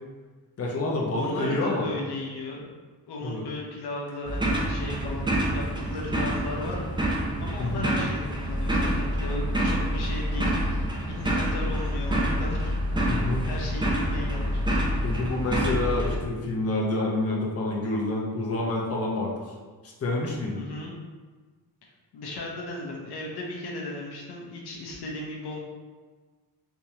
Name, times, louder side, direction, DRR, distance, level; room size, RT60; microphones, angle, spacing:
voice 1, 0.6-1.9 3.2-3.4 7.6-7.9 13.1-13.5 15.0-19.5 19.8-20.6, left 2 dB, 40° left, -3 dB, 0.7 m, -28 dB
voice 2, 1.1-2.6 3.1-6.8 7.4-12.7 13.0-14.6 20.6-20.9 22.1-25.6, left 2 dB, 80° left, -2 dB, 0.8 m, -36 dB
sound 1, 4.3-16.1, equal, 10° right, 0.5 m, -27 dB
3.5 x 2.9 x 2.8 m, 1.4 s
cardioid pair, 90°, 39 cm